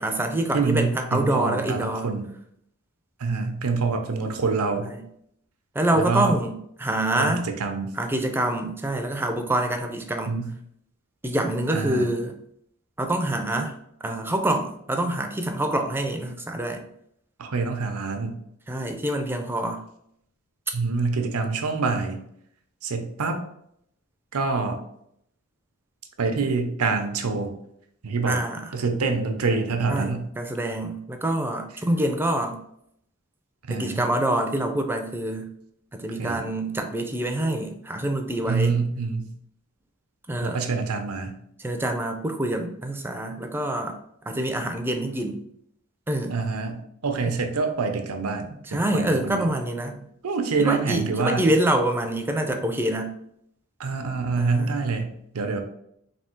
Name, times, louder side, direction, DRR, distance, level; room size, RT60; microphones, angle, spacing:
voice 1, 0.0-2.1 4.9-5.0 5.7-7.5 8.0-10.4 11.2-12.3 13.0-13.8 14.0-16.9 18.7-19.8 28.2-28.6 29.9-32.6 33.7-35.5 35.9-38.7 40.3-40.6 41.6-44.0 44.3-45.4 46.1-46.4 47.2-47.4 48.7-50.1 50.6-53.1 54.4-54.7, right 1 dB, 10° right, 5 dB, 0.4 m, -26 dB
voice 2, 0.5-2.3 3.2-4.9 5.9-6.4 7.1-7.9 10.3-10.5 11.7-12.1 17.4-18.4 20.7-22.2 22.8-23.4 24.3-24.8 26.2-27.5 28.0-28.4 28.7-30.3 33.7-34.1 36.2-36.5 38.5-39.3 40.4-41.4 46.3-49.5 50.2-51.4 53.8-55.6, right 4 dB, 80° right, 6 dB, 0.6 m, -26 dB
3.4 x 2.7 x 4.4 m, 0.72 s
head